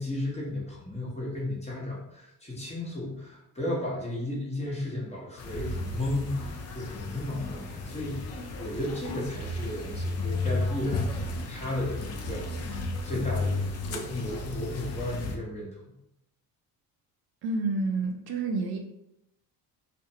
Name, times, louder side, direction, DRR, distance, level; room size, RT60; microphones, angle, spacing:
voice 1, 0.0-15.7, left 1 dB, 15° left, -5 dB, 0.8 m, -34 dB
sound 1, 5.4-15.4, left 2 dB, 40° left, 0.4 m, -33 dB
voice 2, 17.4-18.8, right 3 dB, 65° right, 2 dB, 0.5 m, -29 dB
2.5 x 2.1 x 2.7 m, 0.83 s
cardioid pair, 105°, 41 cm